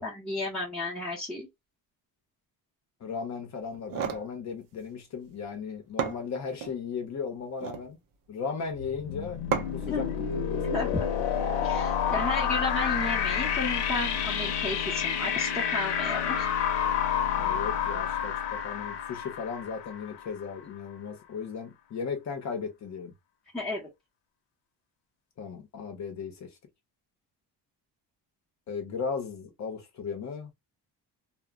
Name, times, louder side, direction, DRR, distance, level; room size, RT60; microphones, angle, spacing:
voice 1, 0.0-1.5 9.9-10.1 10.7-11.1 11.6-16.5 23.5-23.9, left 2 dB, ahead, 0.6 m, -33 dB
voice 2, 3.0-8.0 8.3-9.4 9.7-10.9 17.4-23.1 25.4-26.6 28.7-30.5, left 5 dB, 40° left, 0.7 m, -36 dB
sound 1, 3.7-4.3 5.5-5.6 6.0-6.8 7.4-7.9 9.5-9.9, right 8 dB, 55° right, 0.5 m, -32 dB
sound 2, 8.8-20.5, left 8 dB, 85° left, 0.7 m, -29 dB
2.1 x 2.0 x 3.4 m
cardioid pair, 160°, 42 cm